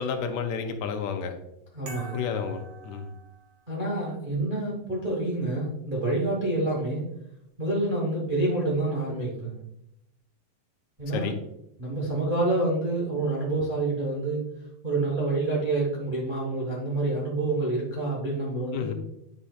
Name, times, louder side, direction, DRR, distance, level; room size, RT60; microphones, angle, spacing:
voice 1, 0.0-1.3 2.1-3.1 11.1-11.4 18.7-18.9, left 6 dB, 85° left, 6 dB, 2.0 m, -31 dB
voice 2, 1.7-2.2 3.7-7.1 7.6-9.6 11.0-11.3 11.8-14.4 14.8-18.9, right 2 dB, 45° right, -4 dB, 0.6 m, -27 dB
sound 1, 1.8-3.8, right 3 dB, 65° right, 1.0 m, -44 dB
9.9 x 5.0 x 2.4 m, 0.82 s
omnidirectional pair, 3.3 m